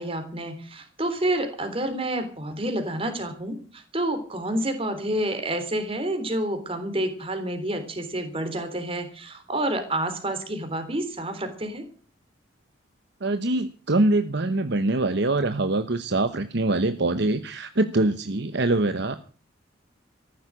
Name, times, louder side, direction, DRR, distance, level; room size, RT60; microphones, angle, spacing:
voice 1, 0.0-11.8, right 1 dB, 30° right, 7 dB, 3.5 m, -29 dB
voice 2, 13.2-19.1, right 2 dB, 60° right, 10 dB, 1.0 m, -24 dB
14.5 x 11.5 x 7.5 m, 0.41 s
head